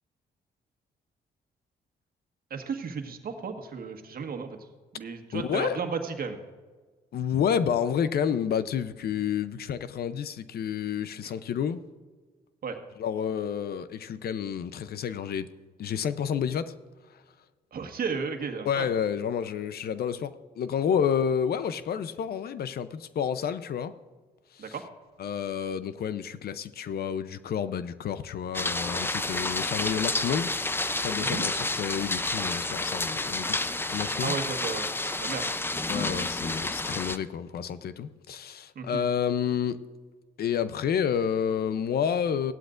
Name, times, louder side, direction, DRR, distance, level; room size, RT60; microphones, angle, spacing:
voice 1, 2.5-4.5 5.0-6.4 11.2-11.3 12.6-12.8 17.7-18.9 24.6-24.8 31.2-31.4 34.2-35.4 38.7-39.0, right 5 dB, 60° right, 5 dB, 1.5 m, -34 dB
voice 2, 5.3-5.8 7.1-11.8 13.0-15.5 15.8-16.7 17.1-17.2 18.6-23.9 24.5-24.8 25.2-30.5 31.0-34.4 35.9-39.8 40.4-42.5, left 8 dB, 65° left, 14 dB, 0.7 m, -30 dB
sound 1, 28.5-37.2, left 2 dB, 15° left, 0.6 m, -30 dB
16.5 x 11.5 x 2.5 m, 1.4 s
supercardioid pair, 65°, 17 cm